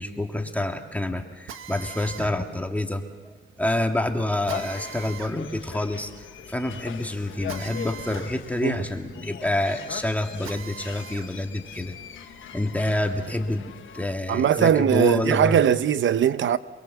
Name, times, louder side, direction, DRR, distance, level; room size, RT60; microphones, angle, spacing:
voice 1, 0.0-11.9 12.5-15.7, left 1 dB, 5° left, 1.9 m, -28 dB
Drill, 1.5-11.3 11.8-13.4, right 7 dB, 90° right, 1.3 m, -43 dB
sound 1, 4.5-14.1, left 8 dB, 75° left, 1.3 m, -40 dB
voice 2, 14.3-16.6, right 9 dB, 75° right, 0.8 m, -20 dB
28.0 x 21.0 x 7.2 m
cardioid pair, 105°, 20 cm